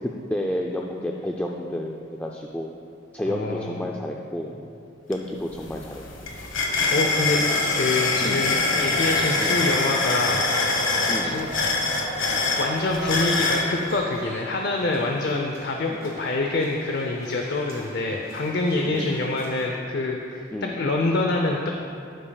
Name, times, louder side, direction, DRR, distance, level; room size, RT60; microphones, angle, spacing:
voice 1, 0.0-2.7 3.1-4.6 5.1-6.0 8.2-8.5 9.4-9.6 11.1-11.5 15.9-16.0 18.8-19.2 20.5-20.8, left 1 dB, 5° left, -1 dB, 0.4 m, -30 dB
voice 2, 3.3-3.9 6.9-7.4 7.7-10.4 11.2-11.5 11.8-11.9 12.6-20.5 20.8-21.7, left 2 dB, 55° left, 1 dB, 0.6 m, -26 dB
sound 1, 5.1-5.2 5.5-13.7, left 3 dB, 70° left, 1.2 m, -24 dB
sound 2, 9.5-19.7, right 1 dB, 85° right, 2.1 m, -40 dB
14.5 x 8.6 x 2.3 m, 2.5 s
head